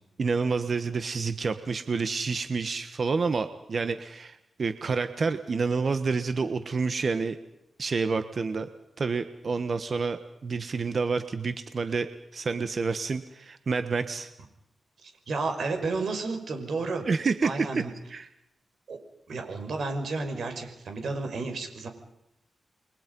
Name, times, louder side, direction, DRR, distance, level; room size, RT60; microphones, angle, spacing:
voice 1, 0.2-7.4 7.8-8.7 9.0-12.1 12.3-14.3 17.1-17.8 18.1-18.3, right 4 dB, 50° right, 10 dB, 1.4 m, -28 dB
voice 2, 15.3-17.0 17.4-17.9 18.9-19.0 19.3-21.9, right 3 dB, 70° right, 5 dB, 5.7 m, -31 dB
30.0 x 23.0 x 5.5 m, 0.86 s
cardioid pair, 95°, 0 cm